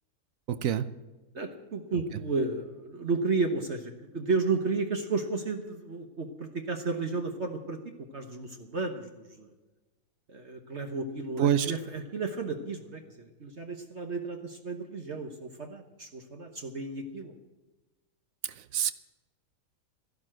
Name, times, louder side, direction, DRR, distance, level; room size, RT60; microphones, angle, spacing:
voice 1, 0.5-0.8 11.4-11.7 18.6-18.9, right 9 dB, 60° right, 14 dB, 1.0 m, -26 dB
voice 2, 1.3-7.8 8.1-9.5 10.3-17.4, right 3 dB, 45° right, 5 dB, 1.3 m, -33 dB
13.5 x 11.5 x 7.6 m, 1.2 s
omnidirectional pair, 1.7 m